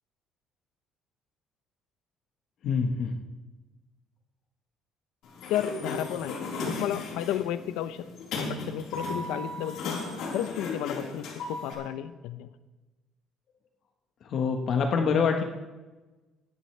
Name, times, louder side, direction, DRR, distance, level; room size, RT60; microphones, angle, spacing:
voice 1, 2.6-3.2 14.2-15.4, left 5 dB, 45° left, 4 dB, 1.3 m, -25 dB
Sliding door, 5.2-11.7, left 3 dB, 65° left, 4.1 m, -36 dB
voice 2, 5.5-6.5 6.8-8.0 8.4-10.0 10.3-12.5, left 11 dB, 85° left, 11 dB, 0.7 m, -32 dB
21.5 x 10.5 x 3.4 m, 1.2 s
cardioid pair, 170°, 0 cm